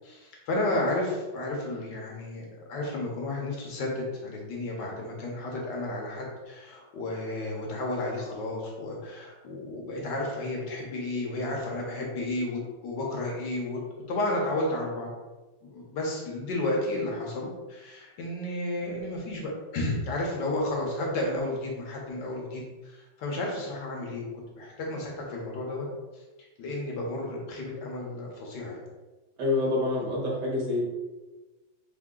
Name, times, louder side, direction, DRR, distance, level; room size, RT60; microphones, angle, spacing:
voice 1, 0.0-13.8 14.1-15.1 15.6-24.3 24.6-25.9 26.6-28.8, left 1 dB, 65° left, -2 dB, 1.5 m, -32 dB
voice 2, 29.4-30.8, left 2 dB, 60° right, -3 dB, 1.7 m, -27 dB
4.3 x 2.8 x 3.7 m, 1.2 s
omnidirectional pair, 2.1 m